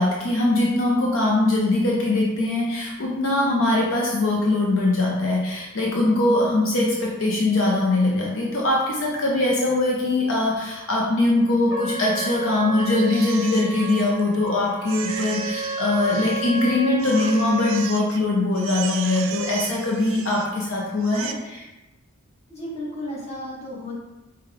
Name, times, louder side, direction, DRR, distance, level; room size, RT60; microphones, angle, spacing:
voice 1, 0.0-21.6, left 2 dB, 65° left, -3 dB, 0.6 m, -22 dB
Trumpet, 11.7-17.9, right 3 dB, 25° right, 0.7 m, -32 dB
Crying sobbing, 12.8-14.5 14.9-16.7 17.0-18.2 18.5-20.6 21.0-21.3, right 8 dB, 65° right, 0.3 m, -36 dB
voice 2, 22.5-23.9, left 1 dB, 30° left, -6 dB, 1.2 m, -33 dB
5.1 x 2.3 x 3.3 m, 1.0 s
head